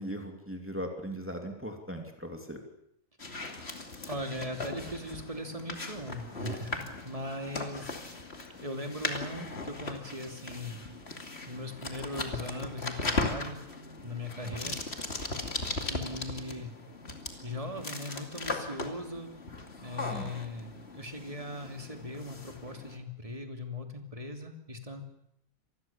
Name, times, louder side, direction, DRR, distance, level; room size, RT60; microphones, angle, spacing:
voice 1, 0.0-2.6 6.8-6.9 8.4-8.6 14.4-14.8 20.1-20.3, equal, 10° right, 3 dB, 2.8 m, -39 dB
sound 1, 3.2-23.0, left 3 dB, 50° left, 2.9 m, -38 dB
voice 2, 4.1-7.9 8.6-10.8 11.5-13.6 14.0-14.8 15.8-16.7 17.4-19.3 19.8-25.0, left 1 dB, 25° right, 4 dB, 3.0 m, -39 dB
26.5 x 20.0 x 7.4 m, 0.77 s
omnidirectional pair, 1.4 m